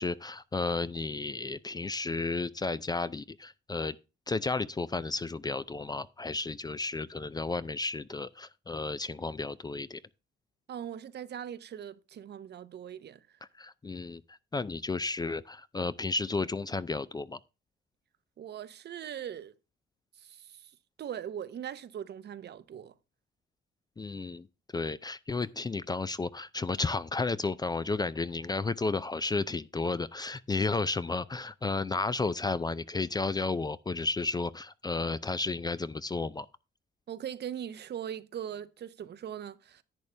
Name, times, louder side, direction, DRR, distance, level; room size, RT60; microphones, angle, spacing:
voice 1, 0.0-4.0 4.3-10.0 13.6-17.4 24.0-24.5 24.7-36.5, left 3 dB, 20° left, 0.4 m, -33 dB
voice 2, 10.7-13.3 18.4-19.5 20.2-20.7 21.0-22.9 37.1-39.8, right 9 dB, 55° right, 0.8 m, -40 dB
10.5 x 8.6 x 3.3 m
cardioid pair, 90°, 20 cm